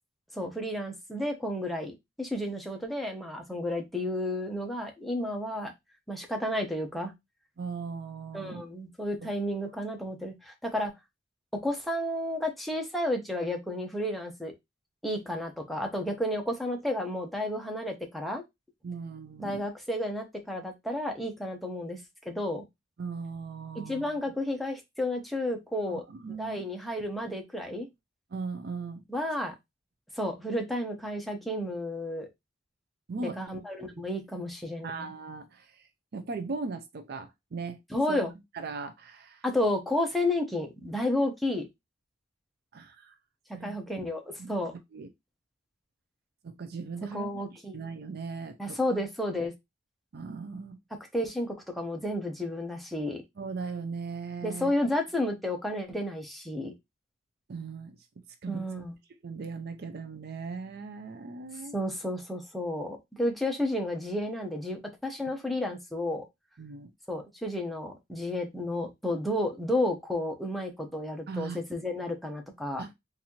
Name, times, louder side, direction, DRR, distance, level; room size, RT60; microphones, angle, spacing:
voice 1, 0.3-5.7 6.1-7.1 8.3-10.9 11.6-14.5 15.0-18.4 19.4-22.0 22.3-22.7 23.9-26.0 26.4-27.9 29.1-29.5 30.2-32.3 33.2-35.1 37.9-38.3 39.4-41.7 43.6-44.7 47.1-47.8 48.6-49.5 51.1-53.2 54.4-56.7 58.5-58.9 61.7-66.2 67.1-72.8, left 1 dB, ahead, 0.8 m, -32 dB
voice 2, 7.6-8.6 9.2-9.3 18.8-19.7 23.0-24.2 25.9-26.7 28.3-29.0 33.1-33.4 34.0-34.1 34.8-37.8 38.1-38.2 38.5-39.4 42.7-43.1 43.5-43.8 44.4-44.5 44.9-45.1 46.4-48.8 50.1-50.8 53.4-54.7 57.5-58.0 58.4-58.6 59.2-61.8 66.6-66.9 71.3-71.6 72.8-72.9, right 4 dB, 55° right, 0.5 m, -38 dB
4.1 x 2.6 x 2.9 m
head